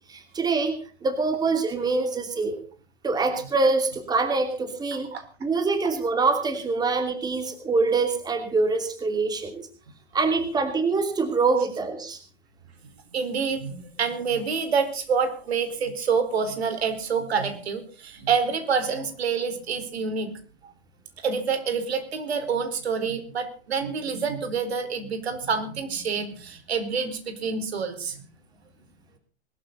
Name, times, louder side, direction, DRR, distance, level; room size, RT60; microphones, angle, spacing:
voice 1, 0.1-0.7 1.0-2.6 3.0-5.1 5.4-9.7 10.1-12.2, right 3 dB, 10° right, 8 dB, 2.8 m, -24 dB
voice 2, 13.1-20.4 21.2-28.2, right 5 dB, 70° right, 9 dB, 4.6 m, -27 dB
21.5 x 13.5 x 4.0 m, 0.39 s
hypercardioid pair, 120°, 33 cm